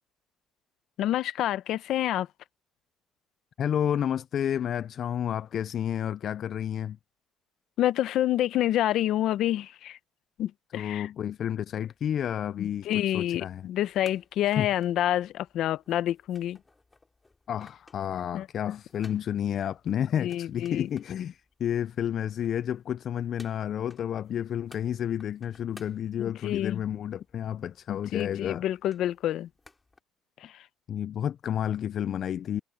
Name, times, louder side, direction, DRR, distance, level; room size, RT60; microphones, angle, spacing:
voice 1, 1.0-2.3 7.8-10.0 10.4-11.1 12.6-16.6 18.3-18.5 20.2-20.9 26.2-26.8 27.9-29.5 30.4-30.6, left 12 dB, 70° left, 0.8 m, -28 dB
voice 2, 3.6-7.0 10.7-13.7 14.6-14.7 17.5-28.6 30.9-32.6, left 9 dB, 55° left, 0.3 m, -31 dB
sound 1, 11.8-30.0, left 3 dB, 20° left, 5.0 m, -58 dB
cardioid pair, 105°, 0 cm